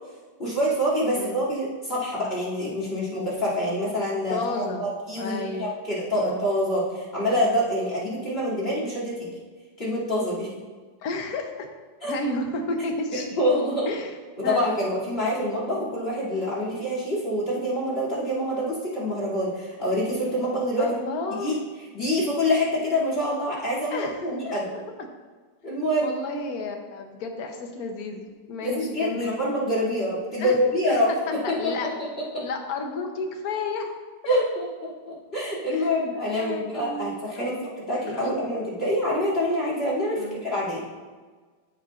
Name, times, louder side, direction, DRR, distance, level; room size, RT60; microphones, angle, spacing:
voice 1, 0.4-9.3 9.8-10.5 12.0-12.1 13.1-13.9 14.4-20.9 21.4-21.6 21.9-24.7 25.6-26.2 28.6-32.1 32.3-32.4 34.2-40.8, equal, 30° left, -7 dB, 2.9 m, -26 dB
voice 2, 4.3-4.9 5.2-5.7 6.2-6.4 11.0-11.7 12.1-13.3 13.8-14.1 14.4-14.6 20.8-21.6 23.9-24.6 26.0-29.4 30.4-30.5 31.3-31.9 32.4-33.9 34.2-34.3 35.7-36.0 36.3-37.6 38.1-38.4 40.2-40.4, left 3 dB, 60° left, 4 dB, 1.2 m, -32 dB
14.0 x 5.5 x 2.5 m, 1.4 s
omnidirectional pair, 2.1 m